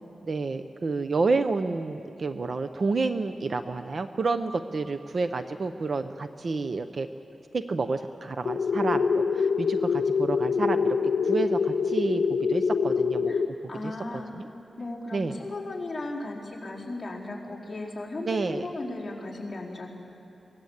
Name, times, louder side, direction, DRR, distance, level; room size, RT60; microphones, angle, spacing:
voice 1, 0.2-7.1 7.5-11.0 11.2-13.3 13.8-13.9 14.4-14.5 15.1-15.3 18.3-18.7, right 3 dB, 45° right, 9 dB, 0.6 m, -29 dB
sound 1, 8.5-13.5, left 5 dB, 75° left, 0.6 m, -25 dB
voice 2, 13.7-14.3 14.8-19.9, left 2 dB, 20° left, -7 dB, 4.2 m, -36 dB
23.0 x 17.5 x 8.1 m, 2.9 s
wide cardioid pair, 165°, 0 cm